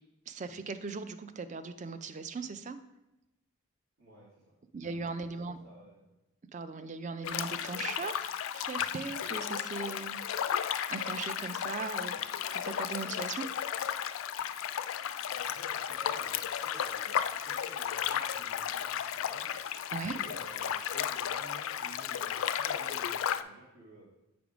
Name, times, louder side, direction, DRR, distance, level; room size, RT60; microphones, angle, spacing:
voice 1, 0.3-2.8 4.7-5.6 6.5-10.2 10.9-12.2 12.5-13.5 19.9-20.2, right 4 dB, 35° right, 11 dB, 0.4 m, -39 dB
voice 2, 4.0-4.5 4.8-5.1 5.5-6.1 15.3-19.5 20.1-24.1, right 1 dB, 65° right, -7 dB, 1.6 m, -53 dB
sound 1, 7.2-23.4, left 9 dB, 75° left, 0.3 m, -34 dB
7.8 x 3.5 x 5.0 m, 0.93 s
head